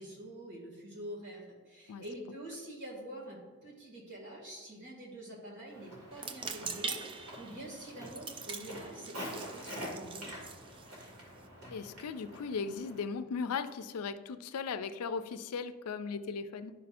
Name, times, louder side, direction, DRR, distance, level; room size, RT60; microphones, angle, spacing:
voice 1, 0.0-10.4, right 1 dB, 55° right, -2 dB, 2.2 m, -46 dB
Walk footsteps, 5.7-13.1, equal, 75° right, 2.3 m, -46 dB
sound 1, 6.1-11.5, right 5 dB, 25° right, 0.3 m, -43 dB
voice 2, 11.7-16.7, left 5 dB, 90° left, 11 dB, 0.4 m, -37 dB
11.0 x 5.6 x 2.6 m, 1.4 s
head